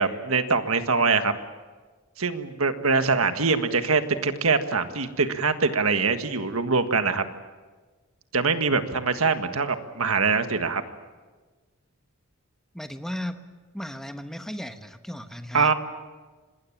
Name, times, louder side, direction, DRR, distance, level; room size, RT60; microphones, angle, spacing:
voice 1, 0.0-1.3 2.2-7.2 8.3-10.8 15.5-15.7, right 4 dB, 85° right, 8 dB, 1.6 m, -23 dB
voice 2, 12.7-13.4 13.7-15.7, left 1 dB, ahead, 7 dB, 1.1 m, -35 dB
26.0 x 20.0 x 7.3 m, 1.4 s
head